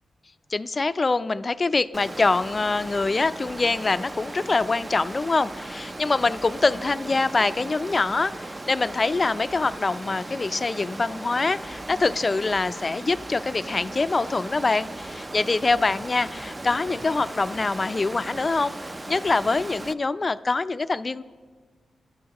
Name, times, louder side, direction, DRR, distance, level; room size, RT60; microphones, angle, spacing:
voice 1, 0.5-18.7 19.1-21.2, left 3 dB, 40° left, 13 dB, 0.4 m, -24 dB
Water, 1.9-19.9, right 2 dB, 25° right, 0.5 m, -37 dB
22.0 x 12.5 x 3.0 m, 1.5 s
cardioid pair, 65°, 0 cm